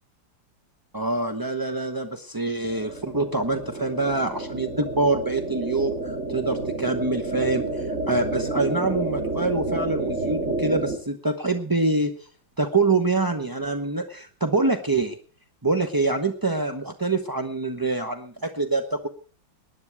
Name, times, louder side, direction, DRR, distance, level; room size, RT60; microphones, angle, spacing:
voice 1, 0.9-12.3 12.6-15.2 15.6-19.1, right 3 dB, 20° right, 6 dB, 0.6 m, -25 dB
sound 1, 2.6-11.0, right 2 dB, 40° right, 2.2 m, -30 dB
19.5 x 10.5 x 4.7 m, 0.39 s
omnidirectional pair, 2.1 m